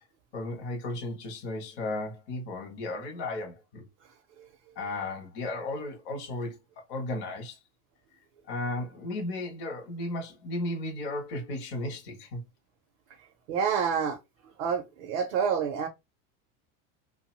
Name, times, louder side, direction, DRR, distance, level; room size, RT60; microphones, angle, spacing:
voice 1, 0.3-3.9 4.8-6.6 6.9-7.6 8.5-12.4, left 2 dB, 25° left, 0.5 m, -34 dB
voice 2, 13.5-14.2 14.6-15.9, right 6 dB, 45° right, 0.4 m, -28 dB
2.9 x 2.0 x 2.8 m
supercardioid pair, 170°, 43 cm